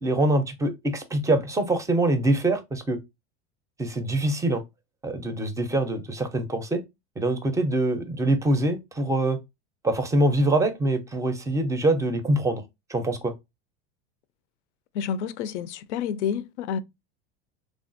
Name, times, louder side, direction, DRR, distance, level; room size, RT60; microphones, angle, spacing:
voice 1, 0.0-3.0 3.8-4.6 5.0-6.8 7.2-9.4 9.8-12.6 12.9-13.3, right 1 dB, 10° right, 0.4 m, -24 dB
voice 2, 14.9-16.8, left 8 dB, 85° left, 0.5 m, -29 dB
3.3 x 2.3 x 2.5 m
supercardioid pair, 110°, 34 cm